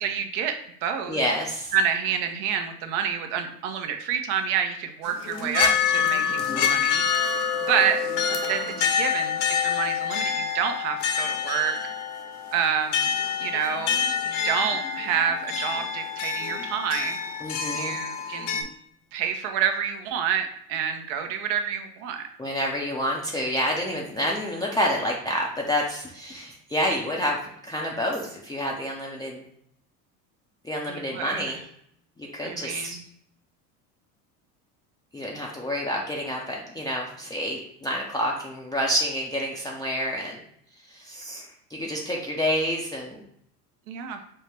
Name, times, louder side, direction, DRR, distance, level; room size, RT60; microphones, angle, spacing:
voice 1, 0.0-1.2 1.7-8.0 8.5-11.8 12.5-13.1 13.4-17.2 17.7-18.7 19.1-22.2 30.9-31.6 32.4-33.0 43.9-44.2, right 8 dB, 60° right, 6 dB, 0.8 m, -28 dB
voice 2, 1.1-1.7 6.4-6.8 17.4-18.0 22.4-29.4 30.6-31.6 32.2-33.0 35.1-40.4 40.9-43.2, equal, 10° left, -3 dB, 0.5 m, -28 dB
sound 1, 5.1-18.6, left 7 dB, 60° left, 1.0 m, -27 dB
5.5 x 2.1 x 3.3 m, 0.70 s
hypercardioid pair, 90°, 48 cm